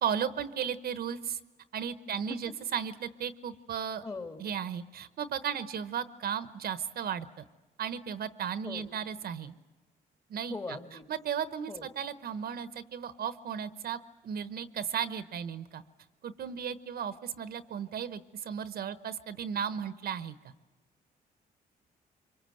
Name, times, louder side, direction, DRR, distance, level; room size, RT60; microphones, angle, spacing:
voice 1, 0.0-1.4 1.7-4.0 4.4-7.4 7.8-9.5 10.3-10.5 11.1-15.8 16.2-20.3, right 8 dB, 60° right, 13 dB, 1.1 m, -35 dB
voice 2, 2.0-2.5 4.0-4.5 8.6-8.9 10.5-11.1 11.7-11.9, left 3 dB, 20° left, 7 dB, 2.4 m, -41 dB
25.0 x 23.0 x 7.9 m, 1.2 s
cardioid pair, 90°, 17 cm